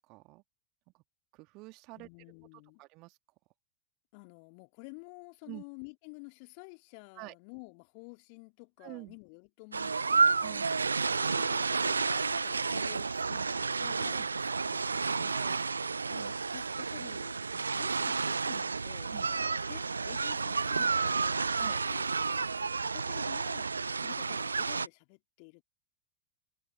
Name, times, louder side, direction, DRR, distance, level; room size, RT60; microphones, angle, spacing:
voice 1, 0.1-0.4 0.9-1.0 1.3-2.1 2.8-3.2 5.5-5.6 7.2-7.3 8.8-9.2 10.4-10.7 14.1-14.3 15.3-15.6 19.1-19.3 21.5-21.8, right 24 dB, 40° right, 2.3 m, -47 dB
voice 2, 1.9-2.8 4.1-10.6 11.2-14.2 14.6-15.4 16.1-21.6 21.9-22.1 22.8-25.6, left 39 dB, 45° left, 2.5 m, -51 dB
sound 1, 9.7-24.9, right 4 dB, 75° right, 0.6 m, -31 dB
figure-of-eight pair, 90°, 0 cm